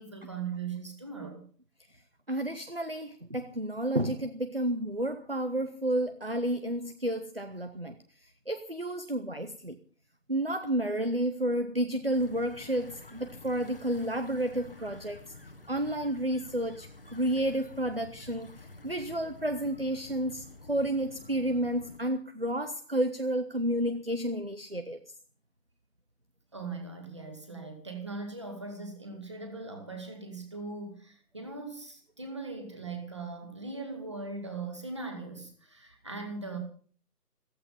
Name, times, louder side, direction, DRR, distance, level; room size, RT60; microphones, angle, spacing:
voice 1, 0.0-1.4 14.8-14.9 26.5-36.6, right 4 dB, 15° right, 5 dB, 2.1 m, -40 dB
voice 2, 2.3-8.0 8.2-9.8 10.3-15.2 15.7-18.5 18.8-25.0, right 1 dB, 35° right, 10 dB, 0.7 m, -31 dB
sound 1, 12.1-22.0, left 2 dB, 35° left, 1.4 m, -50 dB
15.0 x 14.5 x 5.5 m, 0.44 s
figure-of-eight pair, 180°, 49 cm